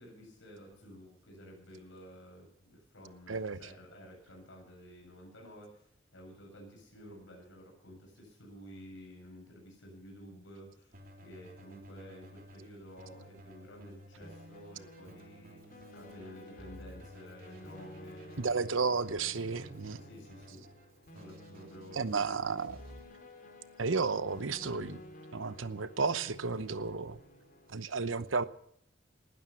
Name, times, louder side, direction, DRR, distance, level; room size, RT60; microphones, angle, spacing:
voice 1, 0.0-15.6 15.9-18.4 18.9-19.0 20.0-20.6 21.1-22.6, equal, 70° left, 7.6 m, -52 dB
voice 2, 3.3-3.6 18.4-20.0 21.9-22.8 23.8-25.0 25.3-27.2 27.7-28.4, right 4 dB, 80° right, 0.9 m, -32 dB
Keyboard (musical), 10.9-23.0, equal, 50° right, 3.1 m, -54 dB
sound 1, 14.2-27.7, left 1 dB, 45° left, 3.8 m, -53 dB
19.0 x 12.5 x 5.8 m
head